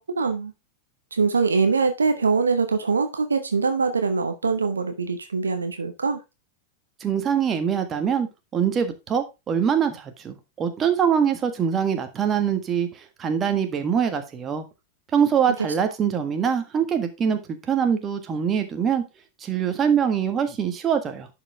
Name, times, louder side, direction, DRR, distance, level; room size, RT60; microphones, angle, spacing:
voice 1, 0.1-0.5 1.1-6.2, right 4 dB, 75° right, 0.9 m, -23 dB
voice 2, 7.0-14.6 15.1-19.0 19.4-21.3, right 7 dB, 25° right, 1.5 m, -23 dB
10.5 x 5.1 x 3.5 m
figure-of-eight pair, 90°, 0 cm